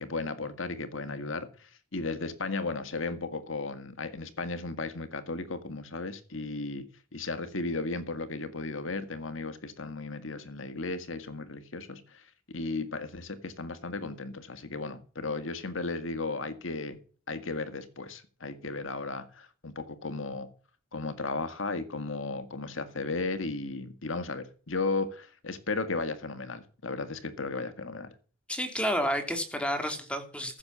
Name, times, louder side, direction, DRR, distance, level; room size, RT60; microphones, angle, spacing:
voice 1, 0.0-17.0 17.3-20.5 20.9-28.1, left 3 dB, 70° left, 1.9 m, -35 dB
voice 2, 28.5-30.6, equal, 5° left, 2.9 m, -30 dB
14.5 x 7.1 x 7.2 m
head